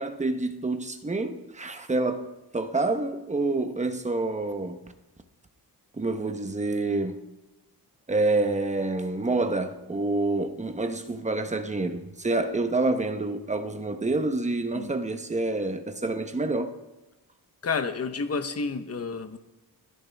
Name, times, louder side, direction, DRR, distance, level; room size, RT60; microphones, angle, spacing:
voice 1, 0.0-2.3 2.5-4.9 6.0-7.2 8.1-16.7, right 2 dB, 20° right, 1.0 m, -27 dB
voice 2, 17.6-19.4, left 4 dB, 40° left, 1.0 m, -30 dB
29.0 x 11.0 x 3.5 m
wide cardioid pair, 145°, 40 cm